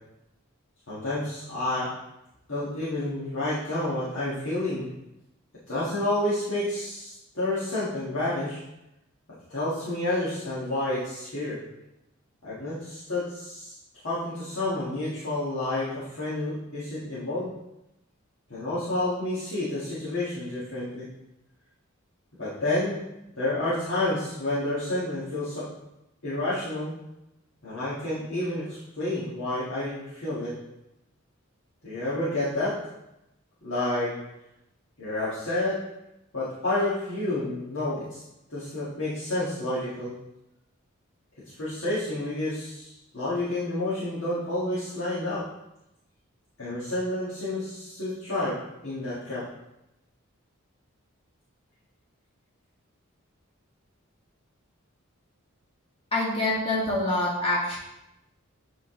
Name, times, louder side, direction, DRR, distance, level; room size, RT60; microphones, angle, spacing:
voice 1, 0.9-1.9 2.5-4.9 5.7-8.6 9.5-11.6 12.4-13.7 14.0-17.5 18.5-21.1 22.4-23.0 23.3-25.7 26.2-26.9 27.6-30.6 31.8-32.8 33.6-34.1 35.0-35.8 36.3-38.2 38.5-40.1 41.6-45.4 46.6-48.6 48.8-49.4, left 1 dB, 60° left, -11 dB, 1.8 m, -29 dB
voice 2, 56.1-57.8, left 2 dB, 25° left, -6 dB, 2.0 m, -25 dB
8.5 x 3.9 x 3.8 m, 0.90 s
head